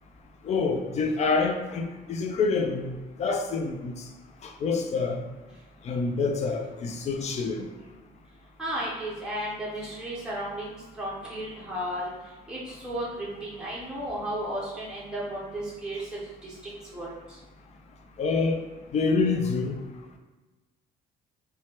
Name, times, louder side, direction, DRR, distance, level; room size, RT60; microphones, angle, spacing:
voice 1, 0.4-4.0 4.4-5.2 5.8-7.7 18.2-18.6 18.9-19.8, left 4 dB, 40° left, 4 dB, 0.4 m, -27 dB
voice 2, 8.6-12.1 12.5-16.0 16.4-17.2, right 1 dB, 5° right, -6 dB, 0.6 m, -34 dB
3.1 x 2.1 x 2.9 m, 1.2 s
cardioid pair, 110°, 17 cm